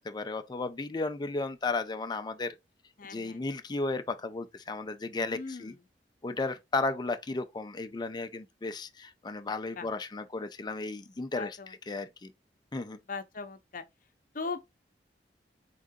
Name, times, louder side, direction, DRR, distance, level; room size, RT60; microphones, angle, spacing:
voice 1, 0.0-2.6 3.0-5.7 6.2-12.3 12.7-13.0, left 3 dB, 25° left, 0.4 m, -34 dB
voice 2, 3.0-3.4 5.2-5.8 9.7-9.9 11.3-12.0 13.1-13.8 14.3-14.7, left 4 dB, 50° left, 0.7 m, -39 dB
3.8 x 3.7 x 3.6 m
head